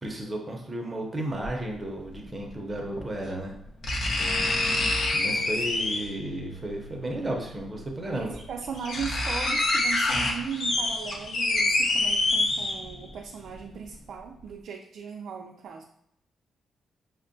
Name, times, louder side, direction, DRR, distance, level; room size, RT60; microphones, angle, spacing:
voice 1, 0.0-3.6 4.1-4.4 5.1-8.3, right 1 dB, 25° right, 1 dB, 0.6 m, -33 dB
sound 1, 1.4-1.5 3.0-3.1 3.8-6.2 7.6-7.7 8.3-8.4 8.6-13.1 13.5-13.6, left 2 dB, 60° left, 0.7 m, -26 dB
sound 2, 4.2-10.2, equal, 85° left, 1.1 m, -45 dB
voice 2, 8.1-15.8, right 7 dB, 70° right, 1 dB, 0.4 m, -38 dB
5.9 x 2.1 x 2.6 m, 0.75 s
cardioid pair, 115°, 0 cm